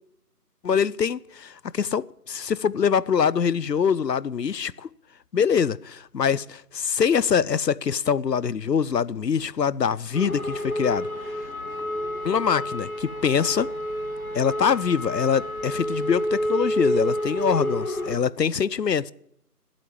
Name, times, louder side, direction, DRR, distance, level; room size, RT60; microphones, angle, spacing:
voice 1, 0.6-4.9 5.3-11.4 12.2-13.7 14.3-19.1, left 7 dB, 85° left, 0.6 m, -24 dB
sound 1, 10.1-18.2, equal, 60° left, 1.7 m, -29 dB
11.0 x 8.4 x 9.6 m
figure-of-eight pair, 165°, 48 cm